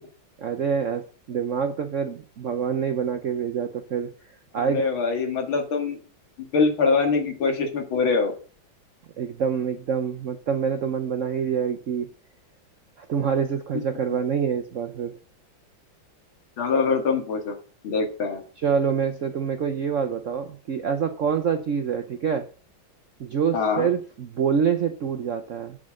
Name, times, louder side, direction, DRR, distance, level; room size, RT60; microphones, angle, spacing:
voice 1, 0.4-1.0 1.3-4.1 4.5-4.9 9.2-12.1 13.0-15.2 18.6-22.5 23.2-25.8, right 7 dB, 65° right, 7 dB, 0.7 m, -26 dB
voice 2, 4.7-6.0 6.5-8.3 16.6-17.6 17.8-18.4 23.5-23.9, left 4 dB, 80° left, 3 dB, 2.9 m, -23 dB
7.9 x 7.3 x 6.4 m, 0.39 s
omnidirectional pair, 2.2 m